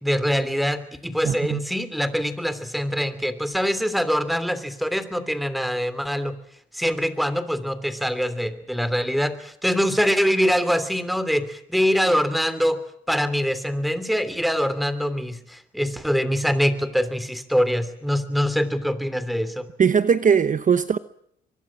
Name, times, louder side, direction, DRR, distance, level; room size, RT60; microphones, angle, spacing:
voice 1, 0.0-6.4 6.7-12.8 13.1-19.7, equal, ahead, 3.1 m, -24 dB
voice 2, 1.2-1.6 19.8-21.0, right 7 dB, 40° right, 1.0 m, -19 dB
23.5 x 22.5 x 7.4 m
cardioid pair, 90°, 20 cm